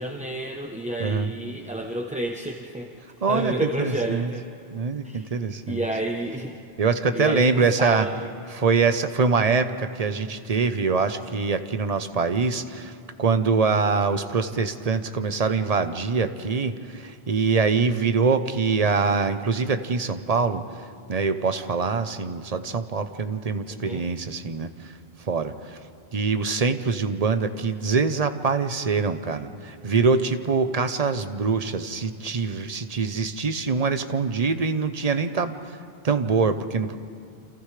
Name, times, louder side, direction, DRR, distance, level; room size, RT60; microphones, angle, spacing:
voice 1, 0.0-4.5 5.0-5.3 5.7-6.6 7.1-8.3 23.7-24.0, right 1 dB, 10° right, 1 dB, 0.7 m, -30 dB
voice 2, 1.0-1.3 3.2-4.3 4.7-5.8 6.8-8.1 8.5-20.6 21.1-25.8 26.1-35.8 36.0-37.0, right 4 dB, 40° right, 9 dB, 0.8 m, -24 dB
29.0 x 27.0 x 3.3 m, 2.4 s
omnidirectional pair, 1.1 m